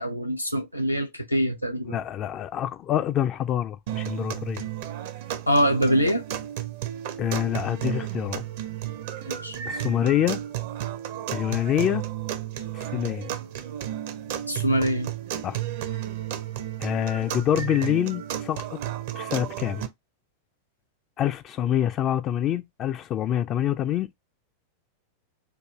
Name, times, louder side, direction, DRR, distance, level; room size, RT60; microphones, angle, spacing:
voice 1, 0.0-2.0 5.5-6.2 9.2-9.6 14.5-15.1, equal, 85° left, 0.6 m, -24 dB
voice 2, 1.9-4.6 7.2-8.4 9.7-10.4 11.3-12.1 12.7-13.3 15.4-15.6 16.8-18.8 19.1-19.9 21.2-24.1, left 11 dB, 30° left, 0.3 m, -26 dB
sound 1, 3.9-19.9, right 11 dB, 50° right, 0.5 m, -33 dB
4.6 x 2.4 x 2.4 m
figure-of-eight pair, 90°, 0 cm